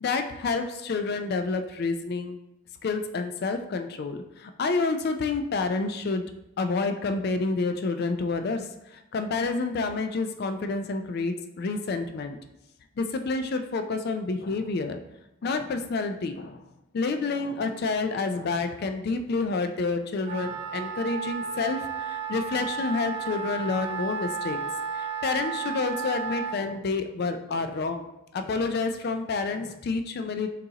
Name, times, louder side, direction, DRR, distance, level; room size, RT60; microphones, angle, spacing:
voice 1, 0.0-2.4 2.8-6.2 6.6-12.4 13.0-15.0 15.4-16.6 16.9-28.0 28.3-30.5, left 3 dB, 50° left, 7 dB, 0.3 m, -29 dB
Wind instrument woodwind instrument, 20.2-26.6, right 6 dB, 30° right, 0.5 m, -33 dB
6.6 x 2.5 x 2.8 m, 0.87 s
head